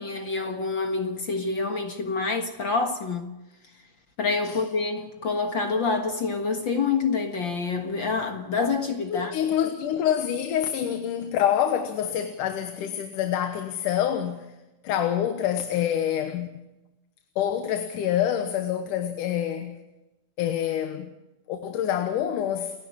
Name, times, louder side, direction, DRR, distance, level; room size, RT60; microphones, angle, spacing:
voice 1, 0.0-3.3 4.2-9.3, left 4 dB, 45° left, 1.8 m, -27 dB
voice 2, 9.1-14.5 14.8-16.5 17.4-19.8 20.4-21.1 21.5-22.7, left 10 dB, 90° left, 2.8 m, -26 dB
29.5 x 11.0 x 8.6 m
omnidirectional pair, 3.6 m